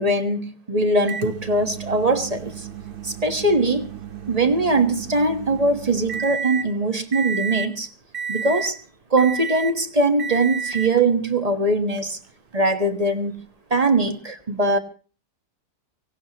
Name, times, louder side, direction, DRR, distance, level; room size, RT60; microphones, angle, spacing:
voice 1, 0.0-2.7 3.0-3.9 4.3-7.9 8.3-8.8 9.1-12.2 12.5-13.4 13.7-14.8, right 2 dB, 25° right, 8 dB, 1.3 m, -21 dB
Microwave oven, 1.1-6.7 7.1-7.7 8.1-8.8 9.2-9.8 10.2-11.0 12.0-12.1 14.1-14.2, right 7 dB, 40° right, 1.0 m, -32 dB
24.0 x 17.5 x 2.9 m, 0.37 s
omnidirectional pair, 1.7 m